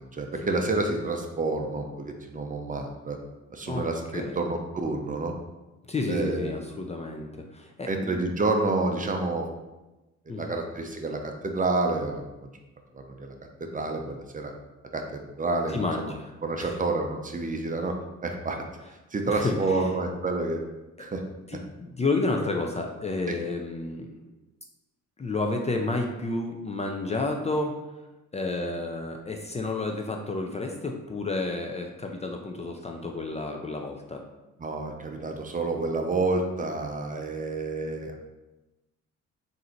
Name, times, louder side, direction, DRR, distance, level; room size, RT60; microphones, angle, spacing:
voice 1, 0.0-3.2 3.5-5.3 6.1-6.5 7.9-9.5 10.3-12.2 12.9-13.3 13.6-14.5 14.9-15.8 16.4-18.0 18.2-18.6 19.1-20.6 21.0-21.2 23.3-23.4 34.6-38.2, right 3 dB, 25° right, 3 dB, 0.6 m, -29 dB
voice 2, 5.9-8.2 10.3-10.6 15.7-16.3 16.6-16.7 19.3-19.8 21.5-24.3 25.2-27.7 28.3-34.2, left 3 dB, 20° left, 2 dB, 0.4 m, -30 dB
3.8 x 2.6 x 4.3 m, 1.1 s
cardioid pair, 90°, 30 cm